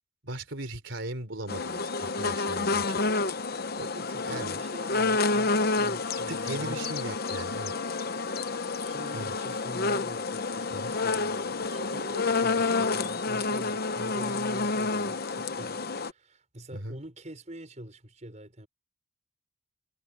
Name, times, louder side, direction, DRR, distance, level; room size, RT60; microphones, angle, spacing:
voice 1, 0.2-3.3 3.8-3.9 4.3-4.6 6.3-7.7 9.1-9.3 10.7-10.9 16.7-17.0, right 1 dB, 65° right, 3.8 m, -38 dB
sound 1, 1.5-16.1, left 3 dB, 50° left, 0.9 m, -29 dB
voice 2, 3.9-7.0 8.7-18.7, right 1 dB, 35° right, 5.6 m, -45 dB
head